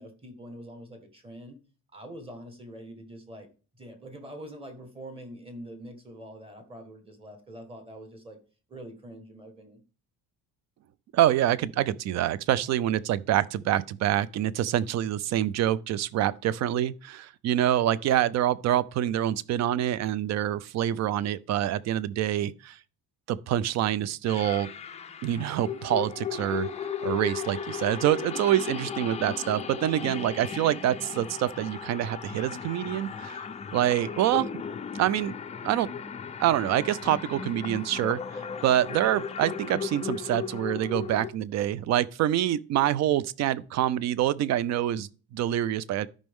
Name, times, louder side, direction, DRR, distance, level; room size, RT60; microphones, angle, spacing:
voice 1, 0.0-1.6 1.9-3.5 3.7-8.4 8.7-9.8, right 1 dB, 15° right, 1.4 m, -44 dB
voice 2, 11.1-22.8 23.3-24.7 25.2-26.7 27.0-33.5 33.7-34.6 34.9-35.3 35.6-35.9 36.4-46.1, right 12 dB, 50° right, 0.4 m, -26 dB
sound 1, 24.3-41.3, left 7 dB, 20° left, 0.3 m, -36 dB
12.5 x 5.3 x 3.6 m
cardioid pair, 170°, 36 cm